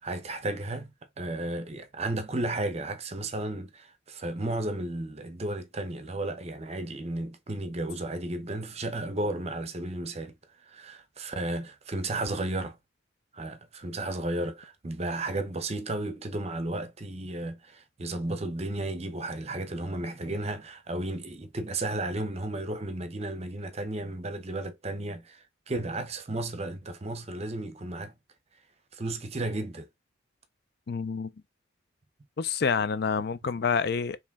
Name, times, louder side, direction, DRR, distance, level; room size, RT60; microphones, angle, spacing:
voice 1, 0.0-10.3 10.6-12.8 13.3-28.1 28.9-29.9, right 2 dB, 35° right, 0.7 m, -33 dB
voice 2, 30.9-31.3 32.4-34.2, left 5 dB, 55° left, 0.5 m, -28 dB
4.8 x 3.0 x 3.5 m
head